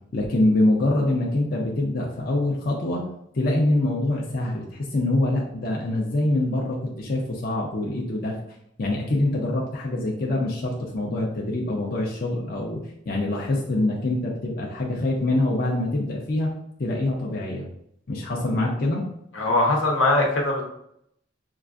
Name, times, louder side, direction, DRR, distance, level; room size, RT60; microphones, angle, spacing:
voice 1, 0.1-3.1 3.3-8.4 8.8-12.8 13.1-16.5 16.8-17.7 18.1-19.1, left 1 dB, 50° left, -2 dB, 0.5 m, -24 dB
voice 2, 19.3-20.6, left 2 dB, 85° left, -1 dB, 0.9 m, -21 dB
5.5 x 2.4 x 2.4 m, 0.75 s
head